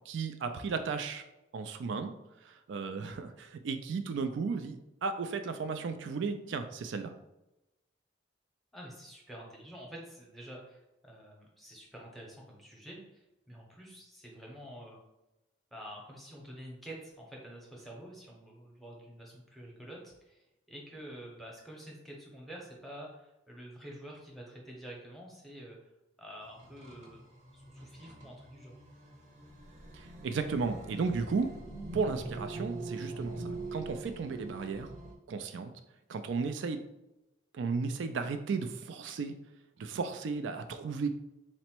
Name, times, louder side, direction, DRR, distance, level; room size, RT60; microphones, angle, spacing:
voice 1, 0.1-1.2 1.5-2.2 2.4-7.1 29.9-31.5 31.9-34.9 35.3-35.7 36.1-36.8 37.5-39.3 39.8-41.1, right 4 dB, 80° right, 8 dB, 0.4 m, -34 dB
voice 2, 8.7-15.0 15.7-25.8 26.2-27.2 27.5-28.8, right 1 dB, ahead, -2 dB, 0.8 m, -48 dB
sound 1, 26.4-35.1, right 2 dB, 40° right, 0.8 m, -44 dB
4.0 x 2.1 x 4.4 m, 0.94 s
head